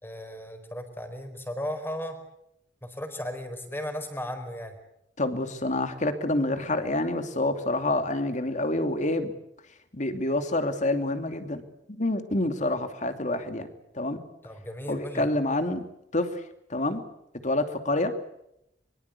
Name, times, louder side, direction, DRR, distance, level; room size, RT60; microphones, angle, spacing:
voice 1, 0.0-2.2 2.8-4.8 14.4-15.3, equal, 15° left, 7 dB, 4.7 m, -35 dB
voice 2, 5.2-9.3 9.9-11.6 11.9-13.7 13.9-14.2 14.9-15.8 16.1-16.4 16.7-17.0 17.4-18.1, left 2 dB, 45° left, 8 dB, 2.7 m, -27 dB
24.0 x 24.0 x 8.4 m, 0.81 s
head